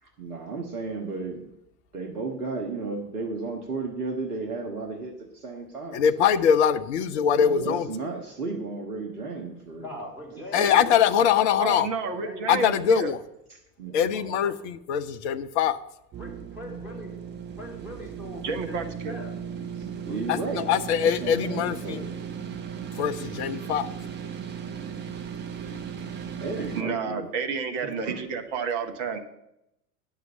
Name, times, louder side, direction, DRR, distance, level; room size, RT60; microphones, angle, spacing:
voice 1, 0.0-1.5 1.9-6.4 7.4-10.0 10.4-11.0 13.5-14.1 19.7-20.7 21.0-22.2 26.4-27.3 27.8-28.2, right 3 dB, 70° right, 2 dB, 1.6 m, -34 dB
voice 2, 5.9-7.9 10.5-11.9 12.5-13.2 13.9-15.8 20.3-20.4 20.7-22.0 23.0-23.9, left 8 dB, 45° left, 10 dB, 0.7 m, -22 dB
voice 3, 9.8-11.5 12.0-13.1 13.9-14.6 16.2-17.1 17.6-19.3 20.1-20.7 26.6-26.9 27.8-28.2, left 1 dB, 5° right, -2 dB, 3.8 m, -42 dB
voice 4, 11.6-13.1 18.4-19.2 26.7-29.2, right 5 dB, 40° right, 6 dB, 1.5 m, -30 dB
sound 1, 16.1-26.8, right 7 dB, 20° right, 0.8 m, -36 dB
9.5 x 6.5 x 7.0 m, 0.84 s
figure-of-eight pair, 90°, 48 cm